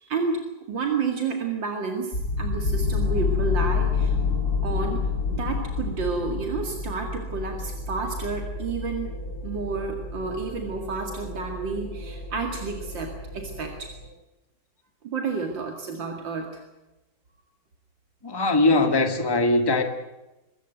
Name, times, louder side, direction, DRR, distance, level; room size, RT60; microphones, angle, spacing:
voice 1, 0.0-4.2 4.6-9.1 9.4-13.9 15.0-16.6, right 4 dB, 85° right, 3.0 m, -30 dB
sound 1, 2.1-14.1, left 4 dB, 55° left, 7.7 m, -29 dB
voice 2, 18.2-19.8, left 2 dB, 15° left, 1.7 m, -21 dB
24.0 x 13.5 x 9.2 m
omnidirectional pair, 2.0 m